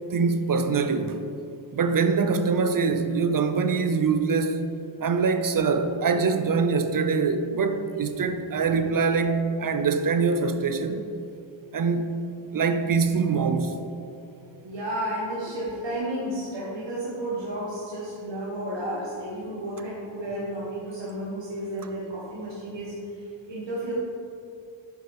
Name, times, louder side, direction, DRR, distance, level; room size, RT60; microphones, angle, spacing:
voice 1, 0.1-1.2 1.7-4.6 5.0-11.1 11.7-12.1 12.5-13.8, right 5 dB, 45° right, 0.5 m, -24 dB
voice 2, 14.4-23.9, right 1 dB, 65° right, 1.3 m, -32 dB
7.7 x 5.7 x 3.4 m
wide cardioid pair, 120°, 47 cm